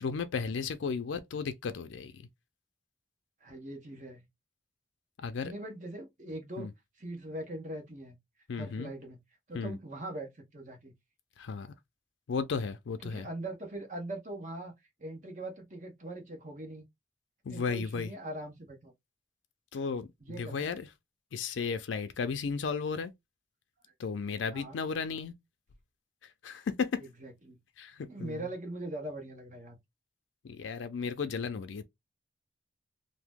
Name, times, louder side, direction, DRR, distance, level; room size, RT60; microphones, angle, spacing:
voice 1, 0.0-2.3 5.2-5.5 6.6-6.7 8.5-8.9 9.5-9.8 11.4-11.7 12.3-13.3 17.4-18.1 19.7-20.9 21.3-23.1 24.0-25.3 26.2-27.0 27.8-28.5 30.4-31.8, left 5 dB, 90° left, 0.4 m, -34 dB
voice 2, 3.4-4.3 5.4-6.7 7.0-8.2 8.5-9.2 9.5-10.9 13.0-14.7 15.0-16.8 17.5-18.9 20.2-20.6 24.5-24.8 27.0-27.6 28.1-29.8, right 1 dB, 40° right, 1.0 m, -41 dB
2.9 x 2.0 x 3.4 m
head